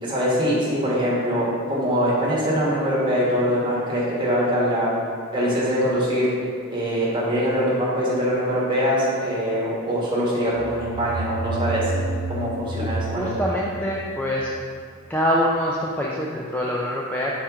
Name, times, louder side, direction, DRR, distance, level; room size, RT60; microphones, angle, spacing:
voice 1, 0.0-4.9 5.3-6.3 6.7-11.9 12.3-13.3, equal, 20° right, -7 dB, 1.4 m, -23 dB
sound 1, 10.5-15.1, right 2 dB, 90° right, 0.4 m, -31 dB
voice 2, 12.8-14.5 15.1-17.3, equal, 10° left, -4 dB, 0.3 m, -25 dB
6.4 x 4.3 x 3.6 m, 2.3 s
head